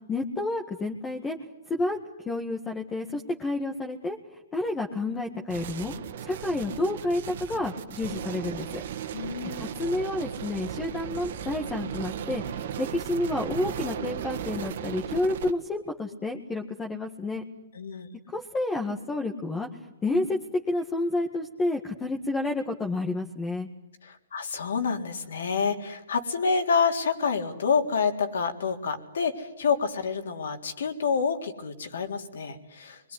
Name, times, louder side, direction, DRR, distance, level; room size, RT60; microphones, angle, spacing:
voice 1, 0.1-1.4 1.7-2.0 2.3-4.2 4.5-5.9 6.2-8.8 9.4-17.4 18.3-19.7 20.0-20.4 20.7-23.7, left 2 dB, 10° left, 3 dB, 1.8 m, -30 dB
sound 1, 5.5-15.5, right 9 dB, 60° right, 2.0 m, -36 dB
voice 2, 9.1-9.7 17.7-18.1 24.0-33.1, left 5 dB, 80° left, 4 dB, 3.7 m, -28 dB
27.0 x 22.0 x 9.8 m, 0.87 s
hypercardioid pair, 150°, 0 cm